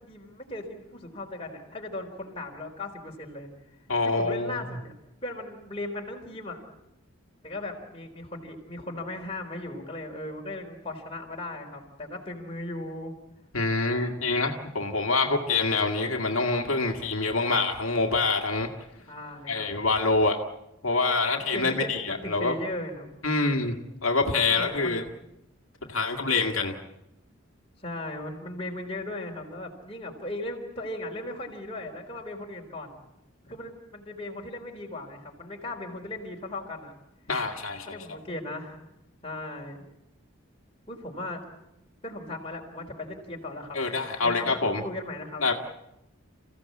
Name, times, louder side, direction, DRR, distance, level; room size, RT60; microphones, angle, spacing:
voice 1, 0.0-3.5 4.0-5.0 5.2-6.6 7.4-13.1 19.1-19.7 21.5-23.1 23.6-24.0 24.5-25.1 27.8-33.0 33.5-36.9 37.9-38.8 39.2-39.8 40.9-41.4 42.0-43.8 44.2-45.5, left 1 dB, 25° left, 0 dB, 4.0 m, -37 dB
voice 2, 3.9-4.6 13.5-18.7 19.5-20.4 20.8-22.5 23.2-23.8 24.0-25.0 25.9-26.8 37.3-37.9 43.7-44.8 45.4-45.5, left 3 dB, 75° left, 3 dB, 2.0 m, -26 dB
28.5 x 16.0 x 8.5 m, 0.92 s
head